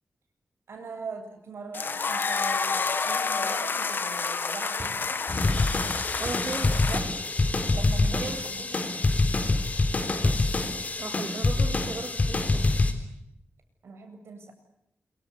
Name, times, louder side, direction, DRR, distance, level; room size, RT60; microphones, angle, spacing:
voice 1, 0.7-5.2 6.7-7.1 7.7-9.2 13.8-14.5, right 4 dB, 70° right, 6 dB, 7.8 m, -41 dB
sound 1, 1.7-7.0, left 4 dB, 50° left, 2.0 m, -29 dB
sound 2, 4.8-5.1 5.4-5.5 6.3-6.6 8.0-8.4 9.1-9.3 10.2-10.6 11.3-11.5 12.6-12.9, right 2 dB, 30° right, 3.8 m, -40 dB
sound 3, 5.3-12.9, left 2 dB, 35° left, 3.9 m, -25 dB
voice 2, 6.2-6.7 8.2-8.4 11.0-12.7, right 3 dB, 45° right, 3 dB, 3.0 m, -36 dB
27.0 x 24.5 x 8.4 m, 0.80 s
wide cardioid pair, 155°, 4 cm